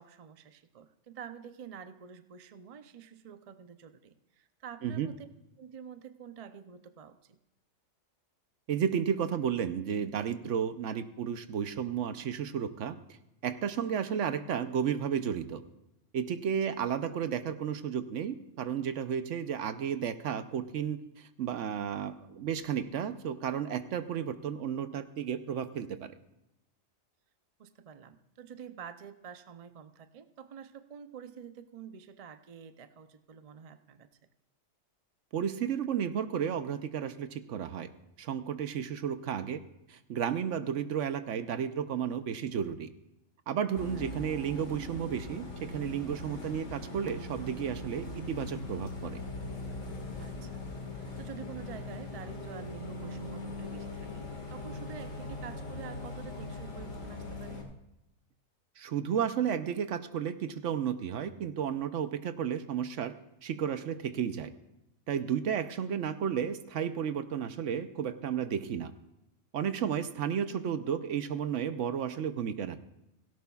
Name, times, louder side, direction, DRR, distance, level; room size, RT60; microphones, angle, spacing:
voice 1, 0.0-5.3 5.6-7.4 16.5-16.8 27.6-34.1 43.8-44.1 50.2-50.6 51.0-57.6 65.5-65.6 69.7-70.0, right 7 dB, 45° right, 10 dB, 0.4 m, -48 dB
voice 2, 8.7-13.0 13.4-15.6 16.1-21.0 21.4-26.2 35.3-37.9 38.2-39.6 39.9-42.9 43.5-49.2 58.8-63.1 63.4-64.5 65.1-68.9 69.5-72.8, right 8 dB, 70° right, 11 dB, 1.0 m, -33 dB
Bus, 43.8-57.6, left 2 dB, 70° left, 2.3 m, -40 dB
17.0 x 17.0 x 2.4 m, 0.88 s
omnidirectional pair, 1.4 m